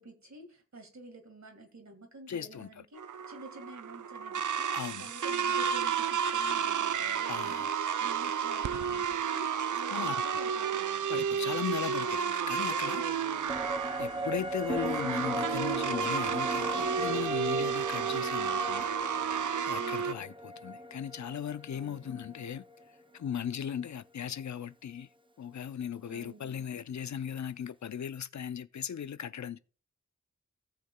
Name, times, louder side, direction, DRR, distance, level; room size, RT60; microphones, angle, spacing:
voice 1, 0.0-3.0 3.3-4.7 5.0-7.7 8.0-11.1 19.7-20.2 21.7-22.1 26.1-26.6, right 2 dB, 65° right, 1.9 m, -50 dB
voice 2, 2.3-2.7 4.7-5.1 7.3-7.7 9.9-10.2 11.1-13.0 14.0-18.9 19.6-22.6 23.1-25.1 25.4-29.6, left 8 dB, 65° left, 0.5 m, -37 dB
sound 1, 3.0-20.1, right 7 dB, 80° right, 0.5 m, -32 dB
sound 2, 11.2-18.9, left 1 dB, 20° left, 1.1 m, -54 dB
sound 3, 13.5-23.0 23.3-23.4, equal, 15° right, 0.6 m, -37 dB
17.0 x 6.6 x 2.2 m
wide cardioid pair, 50°, 30 cm